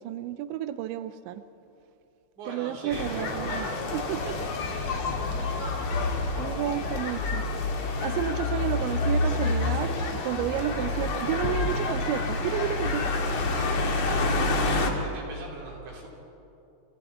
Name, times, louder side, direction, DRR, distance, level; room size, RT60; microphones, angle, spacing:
voice 1, 0.0-1.4 2.5-3.7 3.9-4.5 6.4-7.5 8.0-13.1, right 12 dB, 80° right, 11 dB, 2.7 m, -31 dB
voice 2, 2.4-3.7 5.4-5.8 14.7-16.1, right 2 dB, 65° right, -2 dB, 6.1 m, -41 dB
sound 1, 2.9-14.9, left 3 dB, 55° left, 2.0 m, -28 dB
29.5 x 27.5 x 4.4 m, 2.8 s
omnidirectional pair, 5.8 m